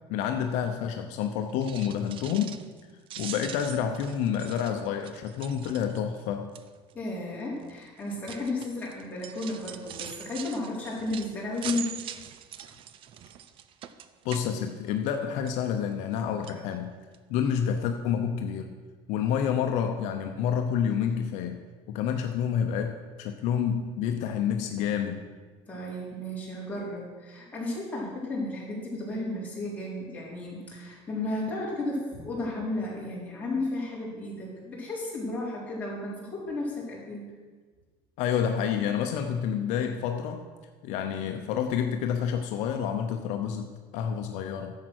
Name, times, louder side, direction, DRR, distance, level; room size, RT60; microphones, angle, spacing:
voice 1, 0.1-2.6 3.2-6.5 14.2-16.9 17.3-18.7 19.1-21.6 21.9-25.2 38.2-40.4 40.8-44.7, left 8 dB, 70° left, 5 dB, 0.8 m, -29 dB
sound 1, 1.5-2.8 3.1-6.2 6.5-6.9 7.6-15.2 15.5-16.2 16.4-16.6 17.1-17.2 17.5-17.6, right 10 dB, 45° right, 0.6 m, -43 dB
voice 2, 6.9-11.9 25.7-37.3, left 2 dB, 10° left, -6 dB, 4.1 m, -33 dB
11.0 x 7.5 x 6.2 m, 1.4 s
cardioid pair, 135°, 12 cm